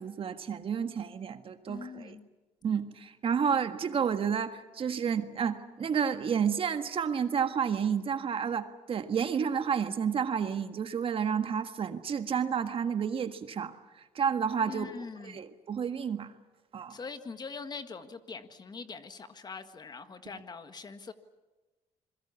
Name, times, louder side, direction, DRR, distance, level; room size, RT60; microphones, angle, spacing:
voice 1, 0.0-2.2 2.6-14.9 15.2-16.3 16.7-17.0, right 7 dB, 50° right, 8 dB, 1.6 m, -30 dB
voice 2, 1.7-2.3 14.6-15.4 16.9-21.1, left 4 dB, 35° left, 9 dB, 1.6 m, -43 dB
28.0 x 22.0 x 7.1 m, 1.2 s
cardioid pair, 100°, 12 cm